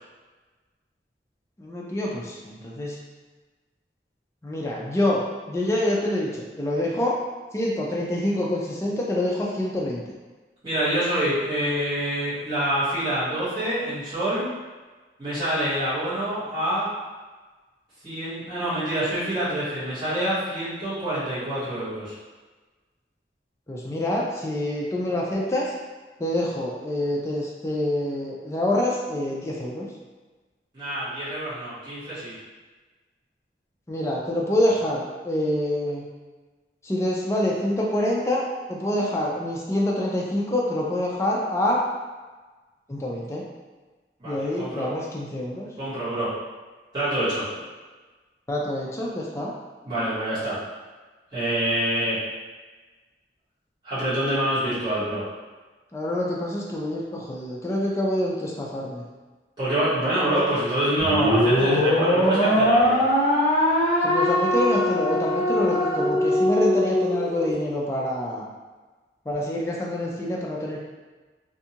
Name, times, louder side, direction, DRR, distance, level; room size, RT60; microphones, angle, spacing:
voice 1, 1.6-3.0 4.4-7.2 7.5-10.0 23.7-25.7 26.2-29.9 33.9-36.1 36.8-41.8 42.9-43.4 44.2-45.7 48.5-49.5 55.9-59.0 64.0-68.5 69.3-70.8, left 1 dB, 15° left, -3 dB, 0.3 m, -26 dB
voice 2, 10.6-14.5 15.2-16.9 18.0-22.1 30.7-32.3 44.2-44.9 45.8-46.3 46.9-47.5 49.8-50.6 51.3-52.2 53.8-55.2 59.6-63.0, right 1 dB, 25° right, -15 dB, 1.2 m, -26 dB
sound 1, 61.0-67.5, left 1 dB, 35° left, 0.9 m, -21 dB
2.6 x 2.3 x 2.8 m, 1.3 s
head